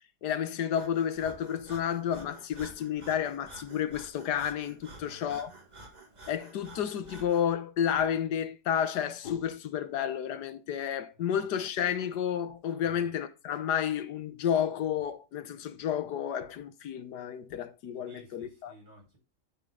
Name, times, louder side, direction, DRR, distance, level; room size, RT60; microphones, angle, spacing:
voice 1, 0.2-5.5 6.3-18.7, left 9 dB, 90° left, 1.5 m, -31 dB
Breathing, 0.7-7.5, right 2 dB, 25° right, 1.8 m, -50 dB
voice 2, 4.9-5.6 11.1-11.5 12.8-13.1 18.1-19.2, equal, 65° right, 5.5 m, -55 dB
12.0 x 5.6 x 3.8 m
omnidirectional pair, 1.7 m